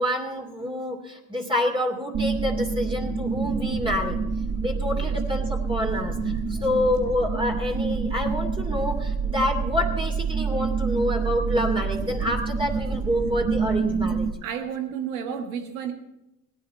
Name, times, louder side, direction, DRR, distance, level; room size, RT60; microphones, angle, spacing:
voice 1, 0.0-4.2 4.6-14.3, left 1 dB, 10° right, 1 dB, 2.6 m, -27 dB
sound 1, 2.1-14.3, right 5 dB, 45° right, 1.3 m, -27 dB
voice 2, 14.4-15.9, right 8 dB, 85° right, 6 dB, 1.5 m, -31 dB
18.0 x 10.5 x 4.3 m, 0.91 s
hypercardioid pair, 55°, 40 cm